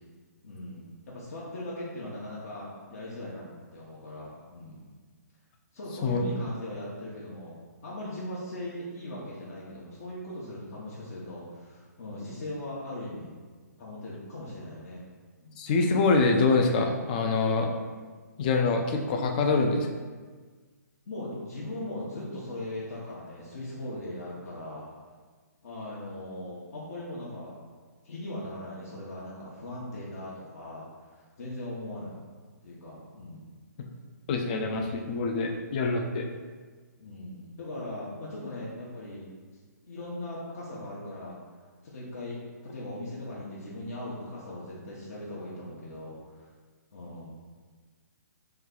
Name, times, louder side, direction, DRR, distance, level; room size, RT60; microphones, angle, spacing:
voice 1, 0.4-3.4 3.7-4.8 5.7-13.3 13.8-15.0 15.4-15.5 21.1-24.9 25.6-27.5 28.0-32.1 32.6-33.5 37.0-39.3 39.8-41.4 41.8-46.5 46.9-47.3, left 1 dB, 55° left, -6 dB, 0.8 m, -39 dB
voice 2, 15.6-17.7 18.4-19.9 34.3-36.3, left 3 dB, 30° left, 3 dB, 0.3 m, -25 dB
3.1 x 2.3 x 3.7 m, 1.4 s
hypercardioid pair, 150°, 9 cm